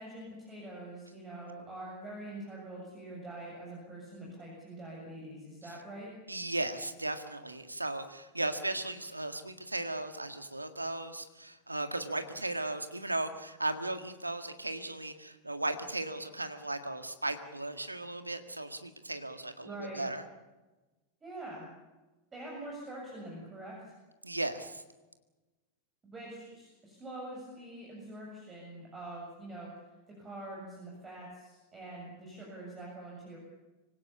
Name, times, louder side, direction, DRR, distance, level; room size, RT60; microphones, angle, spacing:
voice 1, 0.0-6.1 19.6-20.0 21.2-21.7 22.3-23.7 26.1-29.7 30.2-33.4, right 1 dB, 20° right, -3 dB, 7.3 m, -44 dB
voice 2, 6.3-20.2 24.2-24.8, right 2 dB, 85° right, 9 dB, 1.8 m, -36 dB
25.5 x 17.0 x 8.6 m, 1.1 s
figure-of-eight pair, 90°, 0 cm